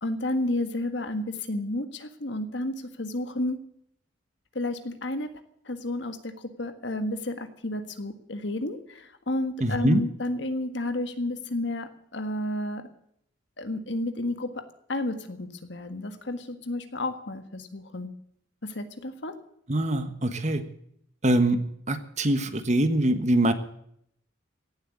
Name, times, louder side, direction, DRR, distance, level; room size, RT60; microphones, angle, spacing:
voice 1, 0.0-3.6 4.5-5.3 5.6-12.9 13.6-18.1 18.6-19.4, left 1 dB, 65° left, 9 dB, 1.6 m, -31 dB
voice 2, 9.6-10.0 19.7-20.7 21.2-21.6 21.9-23.5, right 1 dB, 40° right, 10 dB, 1.3 m, -23 dB
17.0 x 7.9 x 9.8 m, 0.71 s
head